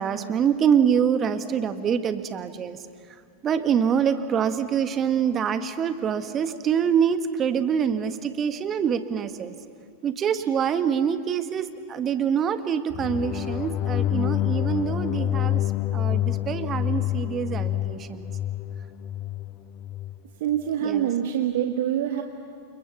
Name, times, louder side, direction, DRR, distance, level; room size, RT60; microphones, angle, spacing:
voice 1, 0.0-2.8 3.4-9.5 10.0-15.6 15.9-18.3 20.8-21.1, right 7 dB, 25° right, 11 dB, 1.4 m, -25 dB
sound 1, 12.9-20.2, left 12 dB, 35° left, 0.8 m, -27 dB
voice 2, 20.4-22.2, right 10 dB, 55° right, 5 dB, 1.4 m, -25 dB
29.5 x 27.5 x 7.2 m, 2.2 s
figure-of-eight pair, 90°, 0 cm